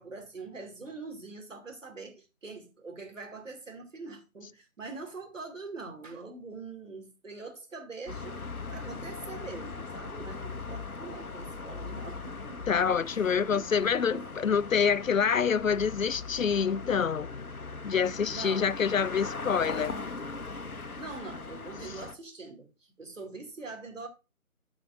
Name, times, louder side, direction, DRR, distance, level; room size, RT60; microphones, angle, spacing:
voice 1, 0.0-8.4 8.7-12.6 13.0-13.6 14.1-14.3 18.3-18.7 21.0-24.1, right 3 dB, 60° right, 2.5 m, -43 dB
sound 1, 8.1-22.1, left 3 dB, 90° left, 1.0 m, -40 dB
voice 2, 12.7-17.3 17.8-19.9, left 6 dB, 70° left, 0.5 m, -26 dB
14.0 x 5.0 x 2.5 m
figure-of-eight pair, 155°, 42 cm